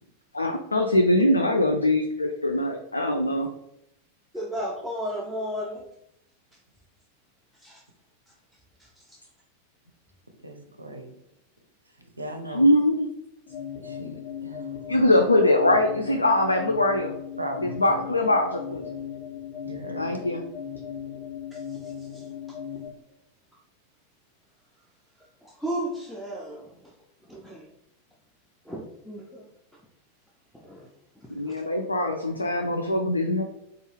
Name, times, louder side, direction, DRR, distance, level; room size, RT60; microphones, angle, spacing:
voice 1, 0.3-3.5 12.5-13.1 14.9-17.2 17.6-18.8 19.9-20.5 31.4-33.4, left 1 dB, 80° left, 4 dB, 0.3 m, -22 dB
voice 2, 4.3-5.9 7.6-7.8 8.8-9.2 21.5-22.3 25.4-26.9 27.3-27.7 28.7-29.5 30.5-30.9 31.2-31.5, equal, 5° left, -2 dB, 0.5 m, -35 dB
voice 3, 10.4-11.1 12.0-12.6 13.8-14.8 17.4-18.0 19.6-20.2, right 1 dB, 80° right, 5 dB, 0.5 m, -38 dB
sound 1, 13.5-22.9, left 8 dB, 40° left, 0.9 m, -37 dB
4.3 x 2.3 x 3.2 m, 0.81 s
figure-of-eight pair, 90°, 0 cm